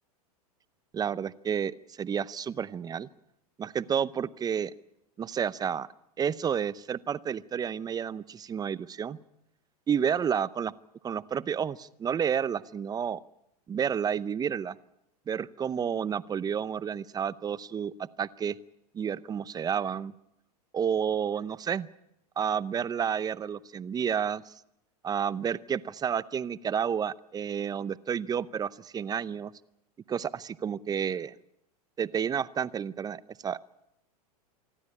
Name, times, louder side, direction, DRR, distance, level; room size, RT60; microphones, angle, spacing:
voice 1, 0.9-1.7 2.0-3.1 3.6-4.7 5.2-5.9 6.2-9.2 9.9-10.7 11.0-13.2 13.7-14.8 15.3-18.6 18.9-20.1 20.7-21.9 22.4-24.5 25.0-29.5 30.1-31.3 32.0-33.6, right 7 dB, 20° right, 18 dB, 0.7 m, -30 dB
25.5 x 13.0 x 9.7 m, 0.82 s
hypercardioid pair, 115°, 20 cm